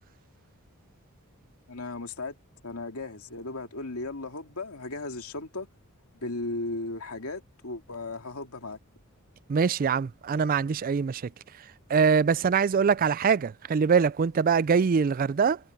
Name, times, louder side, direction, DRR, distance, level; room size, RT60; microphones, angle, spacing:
voice 1, 1.7-2.4 2.6-5.7 6.2-8.8, left 2 dB, 80° left, 2.4 m, -36 dB
voice 2, 9.5-11.2 11.9-15.6, right 6 dB, 40° right, 0.3 m, -23 dB
head